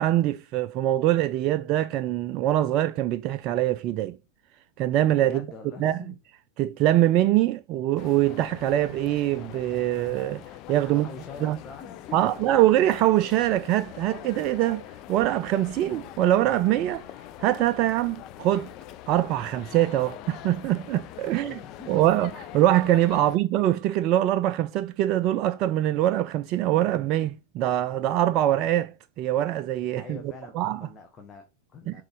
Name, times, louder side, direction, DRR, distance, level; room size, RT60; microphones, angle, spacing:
voice 1, 0.0-4.2 4.8-5.5 5.8-6.0 6.6-10.4 10.7-11.1 11.4-11.6 12.1-14.8 15.1-17.1 17.4-18.7 19.1-21.6 21.9-30.2 30.5-30.9 31.9-32.0, right 13 dB, 40° right, 0.3 m, -23 dB
voice 2, 5.2-6.2 10.8-12.5 21.3-22.1 23.2-23.3 30.0-30.5 30.8-32.0, left 4 dB, 20° left, 1.2 m, -44 dB
Ambience London Waterloo Train Station, 8.0-23.4, left 13 dB, 40° left, 0.6 m, -43 dB
6.5 x 3.8 x 5.1 m
figure-of-eight pair, 90°, 0 cm